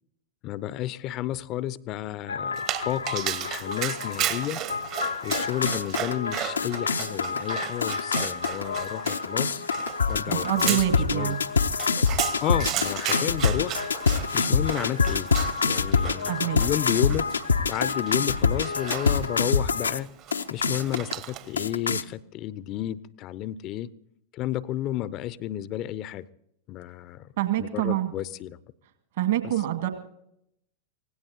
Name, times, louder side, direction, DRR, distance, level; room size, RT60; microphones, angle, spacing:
voice 1, 0.4-4.6 5.2-9.6 10.1-11.4 12.4-13.8 14.3-15.3 15.6-17.3 17.7-20.1 20.5-23.9 24.3-26.3 26.7-27.3 27.6-28.6, left 13 dB, 35° left, 19 dB, 0.6 m, -32 dB
sound 1, 2.3-20.0 20.3-21.1 21.6-22.0, left 5 dB, 75° left, 0.6 m, -26 dB
Dog, 2.6-21.6, right 12 dB, 40° right, 1.1 m, -35 dB
voice 2, 10.3-11.4 16.3-16.6 27.4-28.1 29.2-29.9, right 13 dB, 55° right, 6 dB, 2.1 m, -26 dB
25.5 x 17.5 x 2.9 m, 0.76 s
figure-of-eight pair, 90°, 0 cm